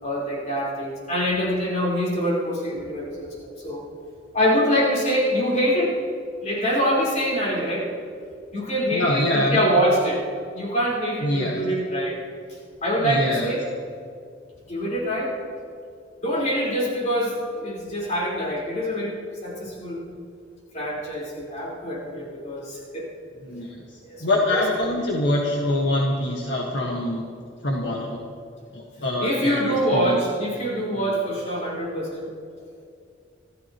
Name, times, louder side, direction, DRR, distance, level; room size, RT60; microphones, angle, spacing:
voice 1, 0.0-3.8 4.3-5.9 6.4-7.9 8.5-10.2 10.5-12.2 12.8-13.6 14.7-15.3 16.2-20.0 20.7-23.1 24.0-24.2 24.5-24.6 29.2-32.3, equal, 40° left, -5 dB, 4.6 m, -25 dB
voice 2, 8.9-9.6 11.2-11.6 13.0-13.5 23.4-23.8 24.2-27.2 27.6-28.2 28.7-30.2 30.9-31.2, left 1 dB, 65° left, -2 dB, 1.6 m, -24 dB
27.0 x 13.5 x 3.1 m, 2.3 s
head